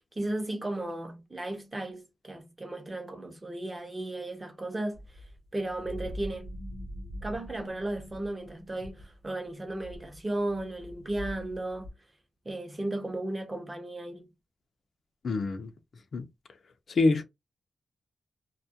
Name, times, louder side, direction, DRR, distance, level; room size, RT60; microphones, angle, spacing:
voice 1, 0.2-5.0 5.5-6.5 7.2-11.9 12.5-14.3, right 1 dB, 20° right, 0.6 m, -35 dB
sound 1, 4.9-11.9, equal, 65° right, 0.7 m, -44 dB
voice 2, 15.2-15.7 16.1-16.3 16.9-17.2, left 3 dB, 60° left, 0.4 m, -26 dB
2.2 x 2.1 x 2.6 m
wide cardioid pair, 125°, 0 cm